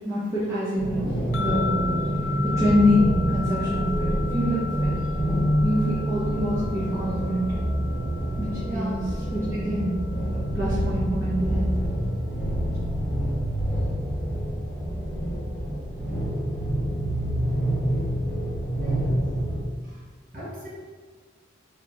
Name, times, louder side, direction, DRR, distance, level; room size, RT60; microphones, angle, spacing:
voice 1, 0.0-1.9 2.4-4.9 5.6-7.6 8.4-10.1 10.5-11.8, left 1 dB, 15° right, -12 dB, 0.8 m, -26 dB
sound 1, 0.7-19.6, equal, 5° left, 1.2 m, -27 dB
sound 2, 1.3-10.6, left 6 dB, 70° left, 0.4 m, -36 dB
voice 2, 8.6-9.0 18.8-19.0 20.3-20.7, equal, 45° right, -8 dB, 1.2 m, -37 dB
4.2 x 3.0 x 2.4 m, 1.5 s
head